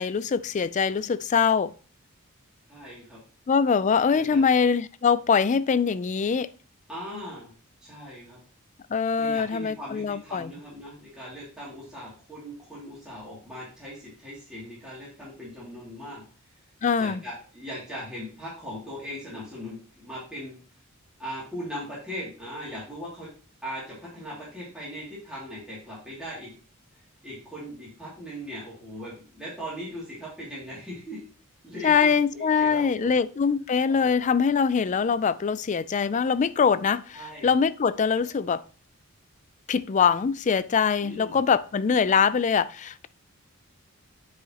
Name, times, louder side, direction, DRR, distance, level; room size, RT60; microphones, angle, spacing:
voice 1, 0.0-1.7 3.5-6.5 8.9-10.5 16.8-17.2 31.8-38.6 39.7-43.1, left 6 dB, 35° left, 0.3 m, -23 dB
voice 2, 2.7-3.2 4.1-4.4 6.9-7.5 7.8-8.4 9.2-16.2 17.0-20.6 21.2-23.3 23.6-26.5 27.2-31.2 31.6-33.1 33.9-34.1 37.1-37.5 41.0-41.4, equal, 5° right, 2.6 m, -39 dB
9.7 x 4.9 x 2.9 m
head